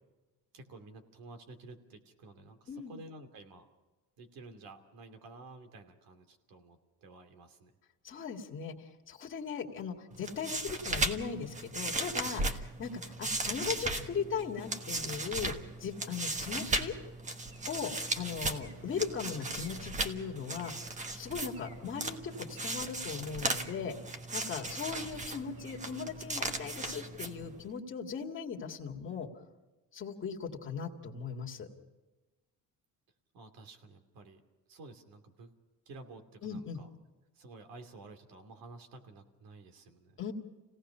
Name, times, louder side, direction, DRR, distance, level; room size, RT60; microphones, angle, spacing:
voice 1, 0.5-3.7 4.2-7.7 33.3-34.4 34.7-35.5 35.9-36.9 37.3-40.2, right 3 dB, 75° right, 6 dB, 2.8 m, -52 dB
voice 2, 8.0-16.9 17.7-24.0 24.3-29.3 29.9-31.7 36.4-36.8 40.2-40.3, left 6 dB, 35° left, 1 dB, 2.1 m, -38 dB
sound 1, 10.1-27.7, right 2 dB, 20° right, 1.2 m, -37 dB
sound 2, 17.4-26.9, right 2 dB, 40° right, 4.2 m, -59 dB
28.5 x 17.5 x 5.6 m, 1.2 s
cardioid pair, 160°, 35 cm